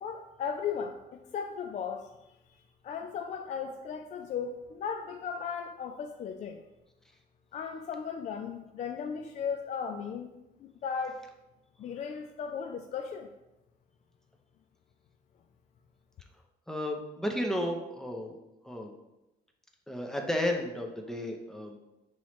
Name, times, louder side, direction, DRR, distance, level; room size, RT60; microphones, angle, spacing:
voice 1, 0.0-2.1 2.8-6.6 7.5-10.3 10.6-11.2 11.8-13.3, left 6 dB, 45° left, 5 dB, 0.4 m, -36 dB
voice 2, 16.7-18.4 18.6-18.9 19.9-21.8, left 1 dB, 5° left, 2 dB, 0.7 m, -33 dB
5.5 x 3.1 x 3.1 m, 0.95 s
cardioid pair, 110°, 17 cm